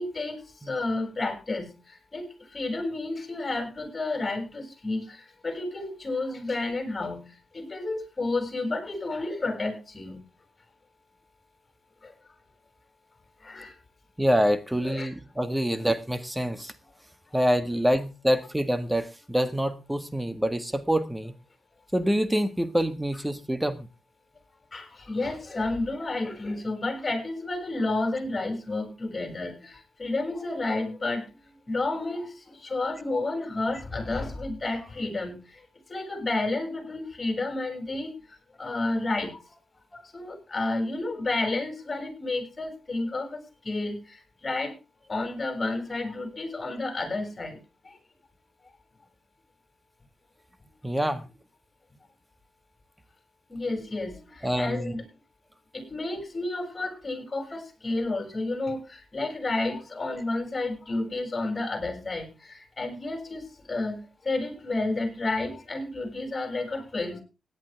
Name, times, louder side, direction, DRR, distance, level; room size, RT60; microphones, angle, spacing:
voice 1, 0.0-10.2 12.0-12.1 13.4-13.8 14.8-15.1 24.7-31.2 31.7-35.6 35.9-38.1 38.6-39.4 39.9-44.7 45.1-47.6 47.8-48.0 53.5-55.0 55.7-67.2, left 2 dB, 35° left, 6.8 m, -31 dB
voice 2, 14.2-16.7 17.3-21.3 21.9-23.9 50.8-51.2 54.4-54.9, equal, 10° right, 1.7 m, -26 dB
17.0 x 10.5 x 3.5 m
supercardioid pair, 55°, 0 cm